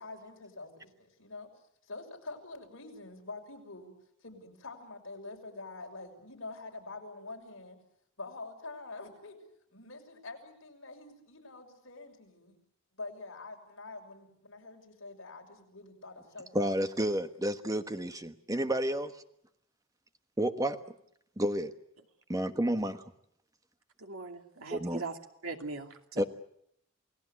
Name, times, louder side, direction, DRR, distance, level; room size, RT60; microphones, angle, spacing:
voice 1, 0.0-1.5 1.8-3.9 4.2-7.8 8.2-9.4 9.7-12.6 13.0-16.6, left 3 dB, 65° left, 1 dB, 6.4 m, -46 dB
voice 2, 16.5-19.1 20.4-20.8 21.4-21.7 22.3-23.0 24.7-25.0 26.2-26.3, right 1 dB, 15° right, 8 dB, 1.3 m, -30 dB
voice 3, 24.0-25.2 25.4-26.3, right 3 dB, 85° right, 4 dB, 2.7 m, -40 dB
28.5 x 18.5 x 8.3 m, 0.72 s
head